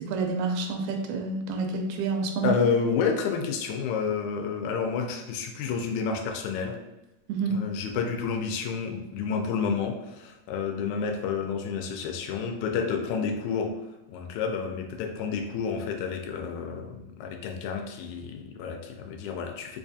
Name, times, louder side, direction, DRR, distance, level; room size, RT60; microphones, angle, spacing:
voice 1, 0.1-2.6 7.3-7.6, right 4 dB, 85° right, 3 dB, 2.0 m, -28 dB
voice 2, 2.4-6.8 7.5-13.7 14.1-19.8, left 5 dB, 90° left, 3 dB, 2.0 m, -30 dB
4.7 x 2.4 x 2.6 m, 1.0 s
omnidirectional pair, 3.3 m